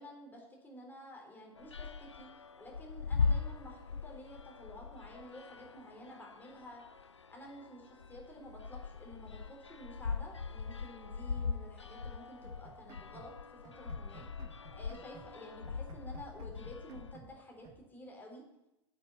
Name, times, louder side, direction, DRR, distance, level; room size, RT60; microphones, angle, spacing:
voice 1, 0.0-6.8 7.3-13.3 13.6-14.3 14.7-18.4, left 1 dB, 15° left, -1 dB, 3.6 m, -51 dB
sound 1, 1.6-17.1, left 5 dB, 85° left, 0.4 m, -40 dB
sound 2, 12.4-13.4 13.6-15.4 15.6-17.4 17.6-17.8, right 6 dB, 35° right, 1.2 m, -56 dB
8.7 x 7.2 x 8.3 m, 0.90 s
figure-of-eight pair, 85°, 15 cm